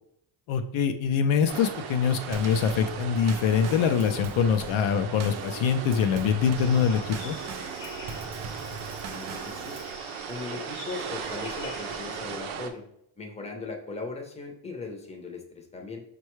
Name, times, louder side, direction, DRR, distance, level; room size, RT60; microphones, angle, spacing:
voice 1, 0.5-7.4, left 7 dB, 75° left, 7 dB, 0.5 m, -24 dB
sound 1, 1.5-12.7, right 6 dB, 85° right, 0.6 m, -38 dB
Drum kit / Snare drum / Bass drum, 2.3-10.0, right 4 dB, 35° right, 0.4 m, -40 dB
sound 2, 6.5-12.4, left 5 dB, 60° left, 0.9 m, -46 dB
voice 2, 9.1-9.8 10.3-12.8 13.2-16.0, left 3 dB, 15° left, 2 dB, 0.6 m, -38 dB
5.3 x 2.3 x 3.1 m, 0.75 s
cardioid pair, 105°, 48 cm